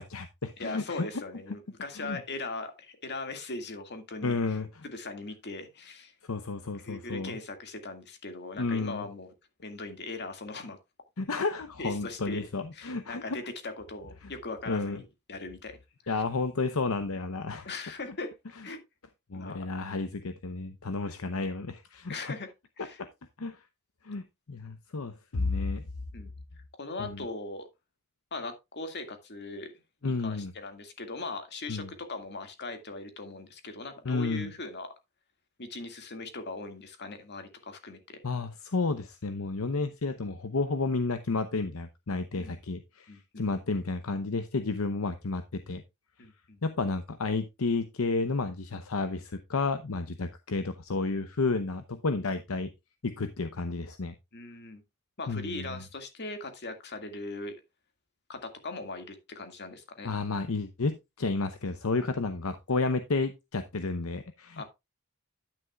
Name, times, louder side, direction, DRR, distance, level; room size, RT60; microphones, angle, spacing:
voice 1, 0.0-1.1 1.9-2.2 4.2-4.8 6.2-7.4 8.6-9.0 11.2-13.4 14.2-14.3 14.7-15.0 16.1-17.7 19.3-22.3 22.8-23.1 23.4-23.6 24.0-25.8 27.0-27.2 30.0-30.5 31.7-31.9 34.0-34.5 38.2-45.8 46.6-52.7 53.0-54.1 55.3-55.8 60.0-64.6, left 3 dB, 70° left, 0.8 m, -31 dB
voice 2, 0.6-4.3 4.8-6.1 6.8-9.3 9.6-10.8 11.8-12.5 12.7-15.8 16.0-16.2 17.6-18.3 18.6-18.8 19.3-19.7 22.1-22.5 22.8-23.0 26.1-26.3 26.8-27.6 28.3-29.7 30.0-34.9 35.6-38.2 42.3-42.6 43.1-43.5 46.2-46.6 54.3-54.8 55.2-57.6 58.3-60.1 64.6-64.7, left 3 dB, 50° left, 2.0 m, -40 dB
10.5 x 9.5 x 2.3 m
head